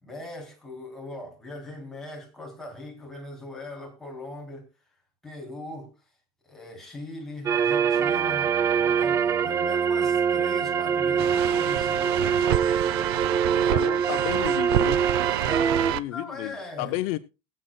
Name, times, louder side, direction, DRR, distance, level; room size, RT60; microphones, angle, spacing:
voice 1, 0.0-4.7 5.2-5.9 6.4-8.5 8.8-12.5 13.6-14.0 15.4-17.0, left 2 dB, 5° left, 3.2 m, -40 dB
sound 1, 7.5-15.9, right 7 dB, 20° right, 0.5 m, -24 dB
Brass instrument, 7.9-13.8, left 3 dB, 20° left, 4.6 m, -43 dB
sound 2, 11.2-16.0, right 14 dB, 90° right, 0.6 m, -29 dB
voice 2, 13.7-15.0 15.9-17.2, left 16 dB, 60° left, 0.6 m, -32 dB
22.0 x 7.7 x 2.2 m
cardioid pair, 160°, 12 cm